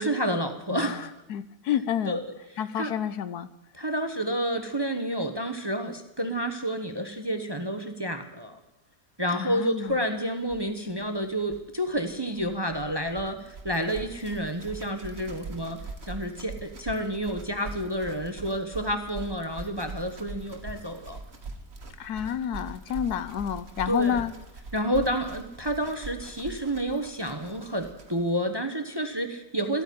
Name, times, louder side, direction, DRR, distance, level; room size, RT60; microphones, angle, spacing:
voice 1, 0.0-1.1 2.1-2.2 2.8-2.9 3.7-8.6 9.2-15.8 16.1-21.2 23.9-24.2 24.7-29.8, right 1 dB, 20° right, 7 dB, 0.9 m, -29 dB
voice 2, 0.7-2.2 2.6-3.5 9.3-10.0 22.0-24.3, left 9 dB, 75° left, 14 dB, 1.2 m, -29 dB
sound 1, 9.9-10.0 10.2-10.3 10.4-28.3, right 3 dB, 40° right, 1.8 m, -43 dB
14.5 x 9.1 x 10.0 m, 0.94 s
omnidirectional pair, 1.7 m